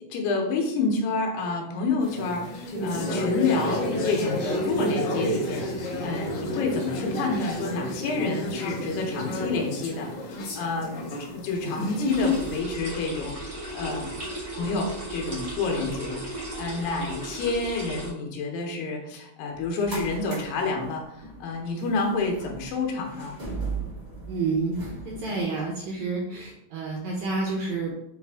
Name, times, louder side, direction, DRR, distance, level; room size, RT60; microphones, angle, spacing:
voice 1, 0.1-14.2 14.5-23.4, left 3 dB, 85° left, 1 dB, 2.6 m, -29 dB
sound 1, 2.0-12.5, left 1 dB, 65° left, 2.2 m, -30 dB
sound 2, 12.1-18.1, right 1 dB, 35° right, 0.9 m, -36 dB
sound 3, 19.5-25.4, right 3 dB, 60° right, 0.7 m, -38 dB
voice 2, 24.3-27.9, right 3 dB, 80° right, -2 dB, 1.7 m, -29 dB
5.9 x 2.4 x 3.4 m, 0.78 s
omnidirectional pair, 4.0 m